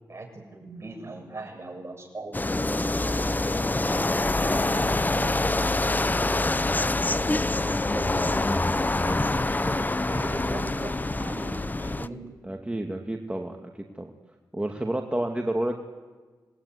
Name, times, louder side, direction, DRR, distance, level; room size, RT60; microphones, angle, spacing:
voice 1, 0.1-6.2 6.8-12.2, right 2 dB, 35° right, 3 dB, 7.3 m, -40 dB
sound 1, 2.3-12.1, left 2 dB, 25° left, 0.9 m, -25 dB
voice 2, 12.4-14.1 14.5-15.7, right 1 dB, 15° right, 3 dB, 2.4 m, -30 dB
26.5 x 20.5 x 9.7 m, 1.4 s
cardioid pair, 55°, 8 cm